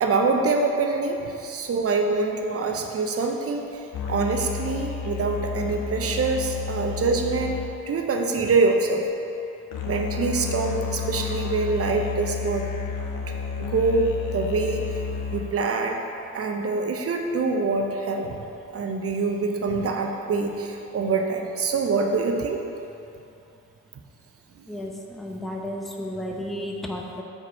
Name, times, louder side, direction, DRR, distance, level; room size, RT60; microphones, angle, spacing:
voice 1, 0.0-3.8 4.1-7.6 7.9-9.1 9.8-12.7 13.3-15.0 15.3-16.0 16.3-18.3 18.7-22.6, right 4 dB, 40° right, 3 dB, 0.8 m, -25 dB
sound 1, 3.9-8.9 9.7-15.7, left 5 dB, 60° left, 0.8 m, -31 dB
voice 2, 24.7-27.2, left 1 dB, ahead, 0 dB, 0.8 m, -33 dB
6.1 x 3.8 x 4.3 m, 2.8 s
hypercardioid pair, 50°, 38 cm